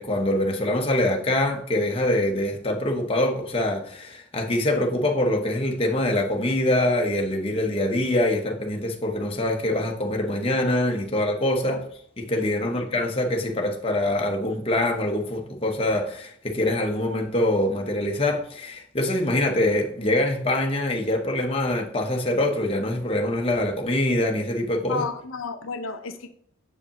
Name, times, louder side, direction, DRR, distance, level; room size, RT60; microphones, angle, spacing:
voice 1, 0.0-11.8 12.2-25.0, left 1 dB, 30° left, 0.8 m, -24 dB
voice 2, 24.9-26.3, left 4 dB, 80° left, 0.5 m, -32 dB
6.7 x 4.8 x 2.9 m
head